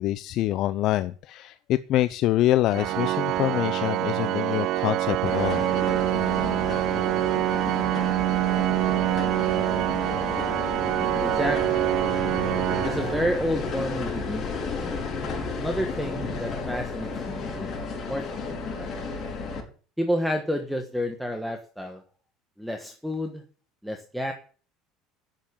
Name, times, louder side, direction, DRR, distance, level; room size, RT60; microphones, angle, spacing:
voice 1, 0.0-5.7, left 14 dB, 50° left, 14 dB, 0.6 m, -25 dB
Organ, 2.7-13.7, right 15 dB, 50° right, 0.5 m, -26 dB
sound 1, 5.2-19.6, left 4 dB, 35° left, 4.7 m, -32 dB
voice 2, 11.2-11.8 12.8-14.7 15.6-17.7 18.0-18.2 18.7-19.2 20.0-22.0 22.6-23.4 23.8-24.3, equal, ahead, 4 dB, 1.4 m, -30 dB
10.5 x 7.5 x 8.6 m, 0.40 s
cardioid pair, 140°, 0 cm